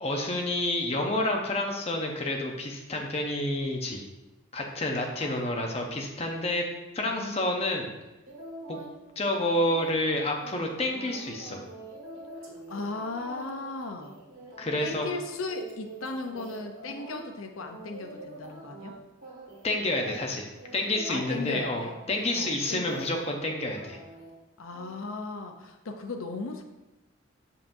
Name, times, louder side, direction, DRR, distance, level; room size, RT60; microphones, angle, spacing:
voice 1, 0.0-4.0 4.5-6.7 6.9-7.9 8.7-8.8 9.2-11.6 14.6-15.1 19.6-20.5 20.7-24.0, left 1 dB, 30° left, 1 dB, 0.8 m, -29 dB
voice 2, 5.2-5.7 7.0-7.4 12.7-14.2 14.8-18.9 21.1-22.0 22.3-23.3 24.6-26.6, left 3 dB, 80° left, 5 dB, 0.7 m, -37 dB
sound 1, 8.3-9.0 9.3-17.3 17.6-19.0 19.2-19.7 20.0-23.4 23.7-24.3 24.7-24.9, right 1 dB, 85° right, 1.8 m, -45 dB
7.0 x 5.6 x 2.7 m, 1.0 s
head